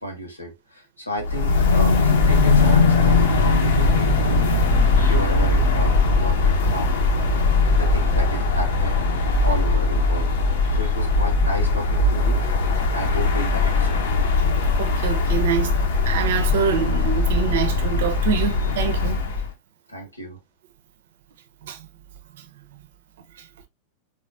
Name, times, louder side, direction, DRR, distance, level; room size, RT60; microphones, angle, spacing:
voice 1, 0.0-4.5 5.0-7.0 7.7-9.0 9.4-10.3 10.7-14.1 19.9-20.4, equal, 85° left, 1.4 m, -32 dB
sound 1, 1.2-19.5, left 3 dB, 60° left, 0.8 m, -20 dB
voice 2, 14.8-15.8 16.1-19.2 21.6-21.8, right 8 dB, 55° right, 0.6 m, -25 dB
4.0 x 3.5 x 2.4 m
figure-of-eight pair, 90°, 0 cm